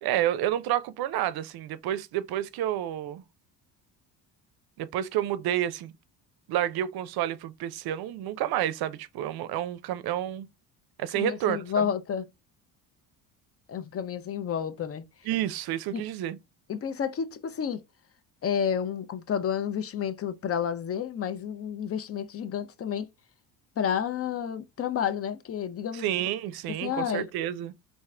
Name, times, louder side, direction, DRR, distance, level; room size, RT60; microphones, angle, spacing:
voice 1, 0.0-3.2 4.8-5.9 6.5-10.5 11.0-11.9 15.3-16.4 25.9-27.7, right 12 dB, 60° right, 0.6 m, -29 dB
voice 2, 11.1-12.3 13.7-15.0 15.9-16.0 16.7-17.8 18.4-23.1 23.8-26.1 26.8-27.3, left 8 dB, 35° left, 0.5 m, -30 dB
3.6 x 2.6 x 3.2 m
cardioid pair, 100°, 42 cm